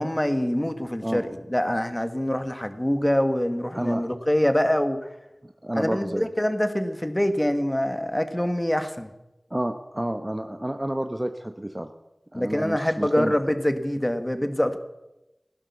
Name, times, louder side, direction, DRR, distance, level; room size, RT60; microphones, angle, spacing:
voice 1, 0.0-5.0 5.7-9.1 12.3-14.8, left 1 dB, 15° left, 9 dB, 1.6 m, -25 dB
voice 2, 3.7-4.1 5.4-6.3 9.5-11.9 12.3-13.3, right 1 dB, 20° right, 7 dB, 1.0 m, -30 dB
16.5 x 11.5 x 7.1 m, 0.97 s
wide cardioid pair, 50°, 0 cm